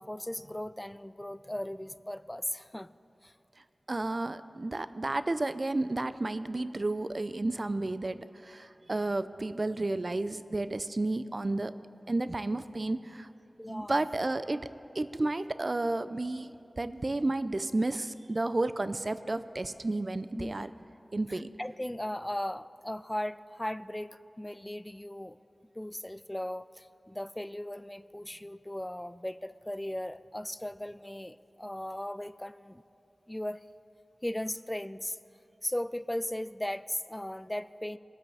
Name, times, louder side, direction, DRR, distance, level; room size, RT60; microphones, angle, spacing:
voice 1, 0.0-2.9 3.2-3.3 13.6-14.1 20.4-20.7 21.1-25.4 25.8-32.8 33.3-33.6 34.2-35.2 35.6-38.0, left 1 dB, 15° left, 15 dB, 0.3 m, -37 dB
voice 2, 3.9-11.7 12.1-13.3 13.7-14.7 15.0-20.7 21.1-21.5, right 2 dB, 50° right, 13 dB, 0.4 m, -32 dB
20.0 x 7.7 x 3.4 m, 2.9 s
cardioid pair, 40°, 0 cm